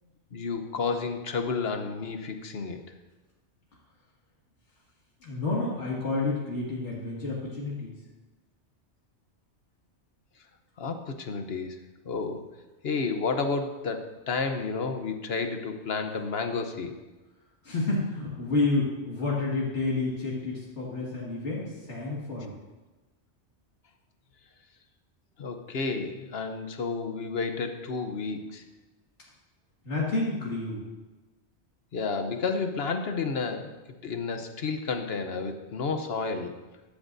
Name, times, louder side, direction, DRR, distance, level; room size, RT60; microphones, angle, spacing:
voice 1, 0.3-2.8 10.8-11.8 12.0-12.4 12.8-17.0 25.4-28.6 31.9-33.7 34.0-36.6, left 4 dB, 60° left, 6 dB, 1.2 m, -31 dB
voice 2, 5.2-8.0 17.6-22.5 29.8-30.8, left 3 dB, 85° left, -5 dB, 2.5 m, -29 dB
14.5 x 12.0 x 2.7 m, 1.2 s
omnidirectional pair, 1.2 m